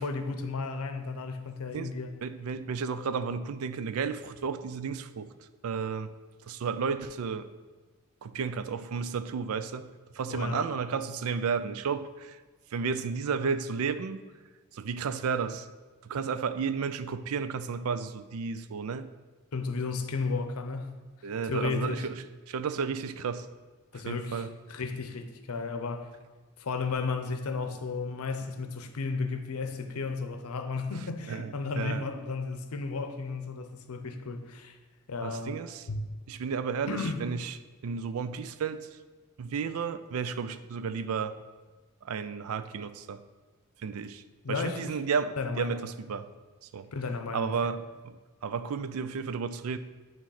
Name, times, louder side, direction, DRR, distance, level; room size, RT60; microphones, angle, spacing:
voice 1, 0.0-2.1 10.3-10.7 19.5-21.0 21.4-22.1 23.9-26.1 26.6-34.8 35.1-35.6 35.9-36.1 36.9-37.3 44.4-45.0 45.4-45.8 46.9-47.5, left 4 dB, 90° left, 0.7 m, -33 dB
voice 2, 2.2-5.3 5.6-6.1 6.5-7.5 8.2-12.4 12.7-14.2 14.7-15.7 16.0-19.1 21.2-23.5 24.1-24.5 31.3-32.0 35.2-35.8 36.3-37.5 37.8-38.9 39.4-41.4 42.0-43.2 43.8-46.3 46.7-46.9 47.3-49.8, right 6 dB, 80° right, 0.4 m, -33 dB
8.9 x 3.1 x 5.6 m
head